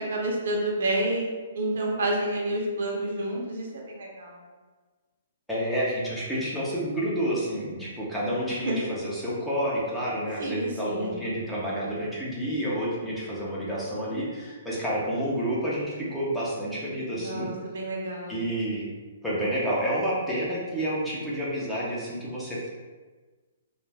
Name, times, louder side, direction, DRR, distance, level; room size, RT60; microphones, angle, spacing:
voice 1, 0.0-4.4 8.5-8.9 10.4-11.2 17.1-18.4, right 1 dB, 70° right, -2 dB, 0.7 m, -29 dB
voice 2, 5.5-17.5 18.3-18.9 19.2-22.7, equal, ahead, -8 dB, 0.6 m, -29 dB
2.3 x 2.1 x 3.3 m, 1.3 s
hypercardioid pair, 145°, 0 cm